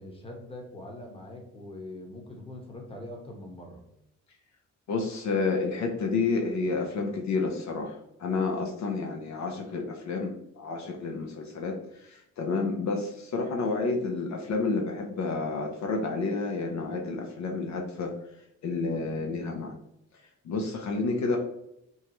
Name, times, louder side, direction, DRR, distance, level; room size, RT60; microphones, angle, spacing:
voice 1, 0.0-3.8, left 1 dB, 20° left, 1 dB, 1.2 m, -42 dB
voice 2, 4.9-18.1 18.6-19.7 20.4-21.4, left 3 dB, 65° left, 2 dB, 0.8 m, -30 dB
5.5 x 2.4 x 3.0 m, 0.80 s
cardioid pair, 90°, 30 cm